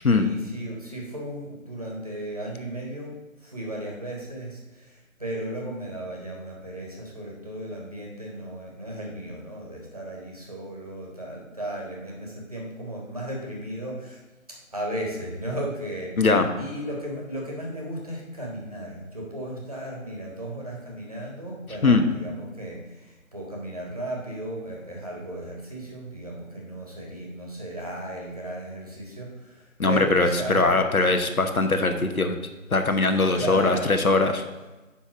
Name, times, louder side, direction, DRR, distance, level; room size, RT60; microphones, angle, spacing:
voice 1, 0.0-14.2 14.5-16.2 16.6-30.8 33.3-34.0, right 1 dB, 25° right, -2 dB, 1.4 m, -35 dB
voice 2, 16.2-16.5 21.8-22.0 29.8-32.3 32.7-34.4, left 3 dB, 85° left, 6 dB, 1.2 m, -21 dB
9.8 x 3.6 x 6.1 m, 1.1 s
figure-of-eight pair, 170°, 42 cm